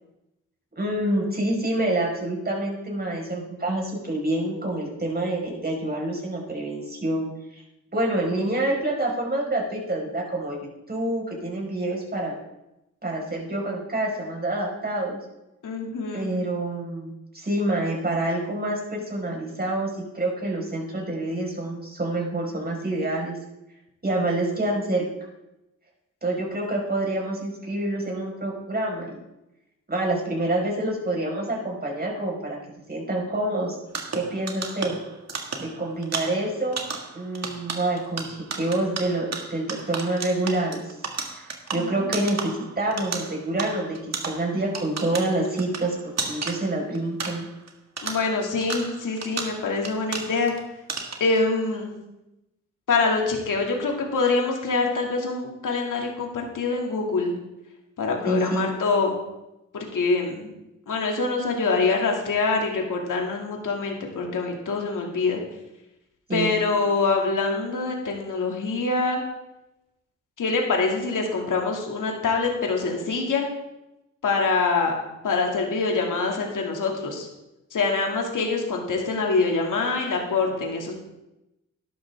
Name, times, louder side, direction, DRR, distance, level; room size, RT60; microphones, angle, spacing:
voice 1, 0.8-7.6 7.9-10.6 10.9-12.4 13.0-15.2 16.1-23.4 24.0-25.0 26.2-29.2 29.9-32.6 32.9-33.8 34.1-35.0 35.6-36.8 37.1-40.9 41.3-41.5 41.7-46.0 46.3-47.4 58.2-58.7 66.3-66.5, right 1 dB, 30° right, -1 dB, 5.2 m, -27 dB
voice 2, 15.6-16.3 41.8-42.1 48.0-50.5 51.2-52.0 52.9-57.4 58.0-59.2 59.7-60.5 60.9-65.4 66.3-69.2 70.4-73.5 74.2-74.9 75.2-77.3 77.7-80.9, left 4 dB, 70° left, 1 dB, 2.5 m, -25 dB
sound 1, 33.9-47.7 48.0-50.6 50.9-51.4, right 4 dB, 50° right, 2.0 m, -34 dB
12.0 x 11.5 x 3.6 m, 0.92 s
cardioid pair, 55°, 33 cm